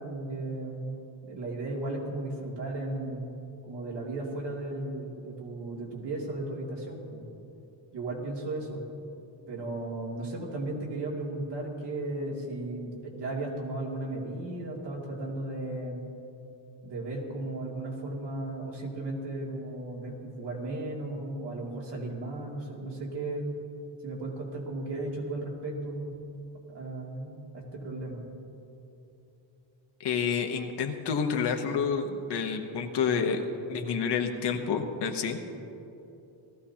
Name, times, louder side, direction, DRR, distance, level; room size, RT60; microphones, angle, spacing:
voice 1, 0.0-3.3 3.7-7.3 7.9-8.8 9.5-16.1 16.8-23.5 24.0-26.1 26.7-28.2 34.5-34.7, right 2 dB, 65° right, -2 dB, 2.6 m, -35 dB
voice 2, 30.0-33.4 33.7-35.4, left 6 dB, 60° left, 4 dB, 1.1 m, -29 dB
18.5 x 14.0 x 2.9 m, 2.9 s
cardioid pair, 155°, 45 cm